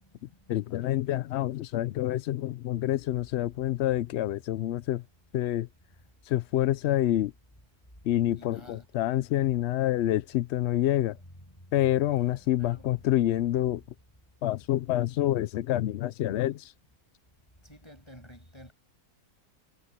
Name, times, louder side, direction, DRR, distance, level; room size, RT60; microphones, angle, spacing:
voice 1, 0.5-5.0 5.3-5.7 6.3-7.3 8.0-11.2 11.7-13.8 14.4-16.7, left 13 dB, 85° left, 0.5 m, -27 dB
voice 2, 8.3-8.8 11.9-12.3 12.6-12.9 17.7-18.7, equal, 15° left, 7.7 m, -50 dB
omnidirectional pair, 1.7 m